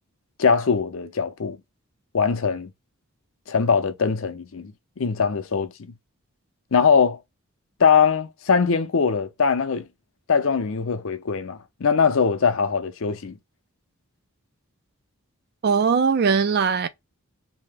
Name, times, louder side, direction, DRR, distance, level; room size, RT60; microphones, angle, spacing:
voice 1, 0.4-1.6 2.1-2.7 3.5-4.7 5.0-5.9 6.7-7.2 7.8-9.8 10.3-13.4, left 6 dB, 65° left, 0.6 m, -21 dB
voice 2, 15.6-16.9, right 5 dB, 50° right, 0.4 m, -20 dB
2.8 x 2.8 x 3.3 m
head